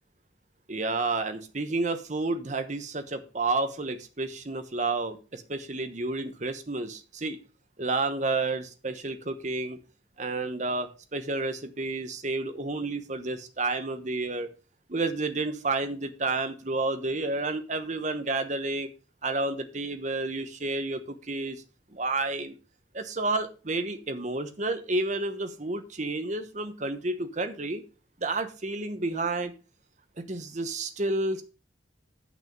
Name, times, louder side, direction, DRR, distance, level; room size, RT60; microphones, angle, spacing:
voice 1, 0.7-7.4 7.8-9.8 10.2-14.5 14.9-18.9 19.2-21.6 21.9-22.5 22.9-27.8 28.2-29.5 30.2-31.4, right 2 dB, 40° right, 1.0 m, -30 dB
8.3 x 6.2 x 5.2 m
head